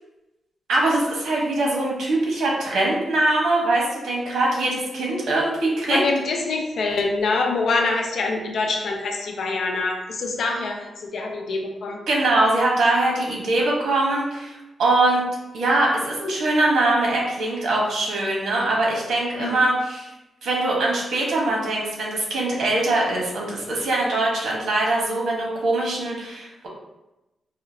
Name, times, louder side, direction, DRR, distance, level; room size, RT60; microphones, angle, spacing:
voice 1, 0.7-6.0 12.1-15.3 15.5-20.1 20.4-26.7, right 2 dB, 85° right, -3 dB, 1.2 m, -22 dB
voice 2, 5.9-12.0 19.4-19.7, left 3 dB, 65° left, 1 dB, 0.7 m, -25 dB
4.9 x 2.8 x 2.8 m, 0.98 s
wide cardioid pair, 150°, 0 cm